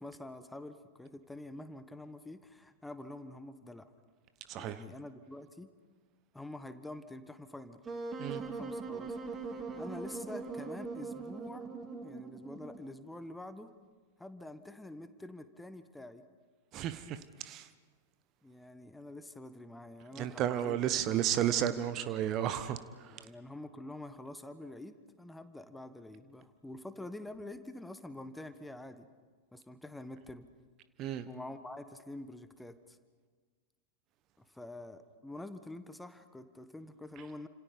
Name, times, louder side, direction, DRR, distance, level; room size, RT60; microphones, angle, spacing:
voice 1, 0.0-3.9 4.6-5.7 6.3-7.8 8.4-9.2 9.8-11.7 12.0-13.7 14.2-16.2 18.4-20.8 21.2-21.7 23.1-29.1 29.5-30.4 31.3-33.0 34.4-37.5, left 1 dB, 5° left, 1.3 m, -47 dB
voice 2, 4.5-4.8 8.2-8.4 16.7-17.7 20.1-23.3 31.0-31.3, right 10 dB, 35° right, 1.1 m, -33 dB
Wind instrument woodwind instrument, 7.9-13.0, right 4 dB, 20° right, 2.6 m, -41 dB
29.5 x 27.0 x 5.2 m
figure-of-eight pair, 90°, 0 cm